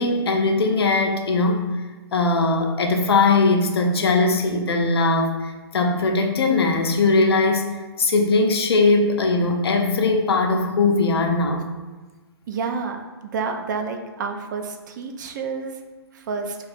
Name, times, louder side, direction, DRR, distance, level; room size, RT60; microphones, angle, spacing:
voice 1, 0.0-1.7 2.1-11.7, left 3 dB, 70° left, 3 dB, 0.5 m, -20 dB
voice 2, 12.5-15.8 16.1-16.6, right 5 dB, 45° right, 5 dB, 0.4 m, -29 dB
2.7 x 2.3 x 4.0 m, 1.2 s
hypercardioid pair, 130°, 14 cm